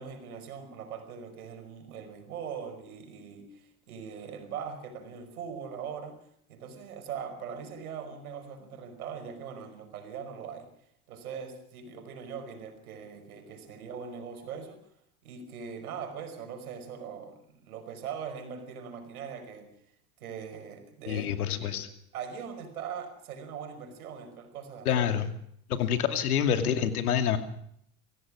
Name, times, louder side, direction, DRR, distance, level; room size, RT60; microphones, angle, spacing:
voice 1, 0.0-10.7 11.1-14.8 15.2-19.7 20.2-21.3 21.6-21.8 22.1-25.0 25.8-26.2, right 7 dB, 85° right, 7 dB, 5.3 m, -41 dB
voice 2, 21.1-21.9 24.8-25.3 25.7-27.4, left 8 dB, 85° left, 7 dB, 2.6 m, -27 dB
25.5 x 16.5 x 6.2 m, 0.70 s
hypercardioid pair, 90°, 43 cm